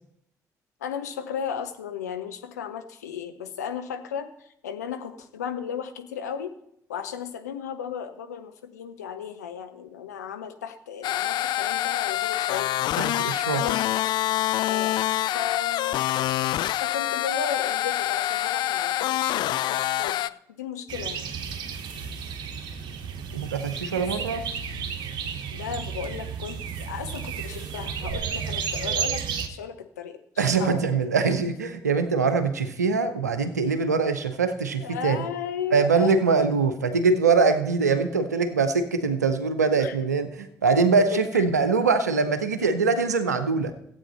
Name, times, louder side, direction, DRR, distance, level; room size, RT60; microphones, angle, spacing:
voice 1, 0.8-6.5 6.9-12.9 13.5-13.9 14.6-15.0 15.3-16.1 16.7-21.3 23.9-24.1 25.5-30.2 30.6-30.8 34.8-36.5 39.8-40.0 41.0-41.4, left 7 dB, 80° left, 7 dB, 0.7 m, -35 dB
sound 1, 11.0-20.3, left 13 dB, 55° left, 0.3 m, -26 dB
voice 2, 13.0-13.6 23.3-24.4 30.4-35.2 35.7-43.7, right 4 dB, 85° right, 10 dB, 0.7 m, -23 dB
sound 2, 20.9-29.5, right 7 dB, 60° right, 1.0 m, -32 dB
15.0 x 8.5 x 4.3 m, 0.77 s
figure-of-eight pair, 40°, 9 cm